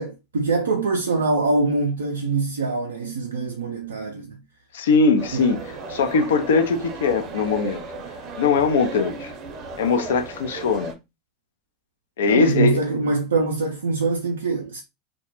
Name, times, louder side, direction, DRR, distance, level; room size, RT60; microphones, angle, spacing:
voice 1, 0.0-4.4 5.3-5.4 12.3-14.8, right 3 dB, 85° right, 0.3 m, -24 dB
voice 2, 4.7-7.8 8.4-9.3 9.8-10.9 12.2-12.8, left 4 dB, 80° left, 0.4 m, -21 dB
sound 1, 5.2-10.9, right 3 dB, 50° right, 0.6 m, -35 dB
2.1 x 2.0 x 2.9 m
hypercardioid pair, 85°, 0 cm